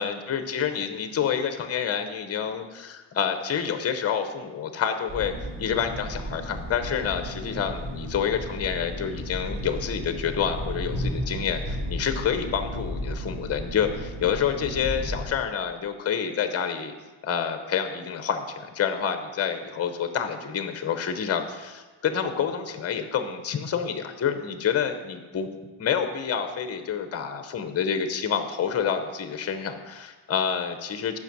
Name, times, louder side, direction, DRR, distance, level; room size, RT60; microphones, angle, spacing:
voice 1, 0.0-5.3 5.6-16.9 17.2-25.5 25.8-31.2, left 7 dB, 35° left, 8 dB, 0.7 m, -28 dB
sound 1, 5.1-15.3, equal, 60° right, 2.4 m, -34 dB
9.8 x 5.2 x 6.1 m, 1.3 s
cardioid pair, 160°, 44 cm